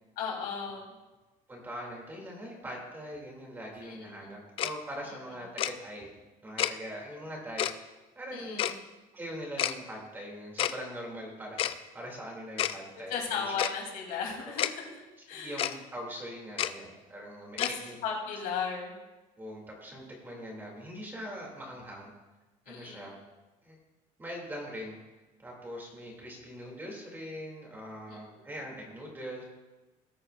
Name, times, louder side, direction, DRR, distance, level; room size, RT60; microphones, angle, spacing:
voice 1, 0.2-0.9 3.8-4.3 5.1-5.2 8.3-8.7 13.1-15.7 17.5-18.9 22.7-23.1 28.1-28.4, left 6 dB, 75° left, 0 dB, 2.8 m, -36 dB
voice 2, 1.5-6.1 6.4-8.7 9.1-13.4 14.5-14.6 15.4-18.0 19.4-22.1 22.7-23.1 23.6-23.8 24.2-25.0 25.4-29.4, equal, 15° right, -1 dB, 2.4 m, -42 dB
Tick-tock, 4.6-4.7 5.6-5.7 6.6-6.7 7.6-7.7 8.6-8.7 9.6-9.7 10.6-10.7 11.6-11.7 12.6-12.8 13.6-13.7 14.6-14.7 15.6-15.8 16.6-16.7 17.6-17.7, left 11 dB, 40° left, 0.4 m, -29 dB
19.5 x 8.9 x 2.4 m, 1.2 s
cardioid pair, 175°, 15 cm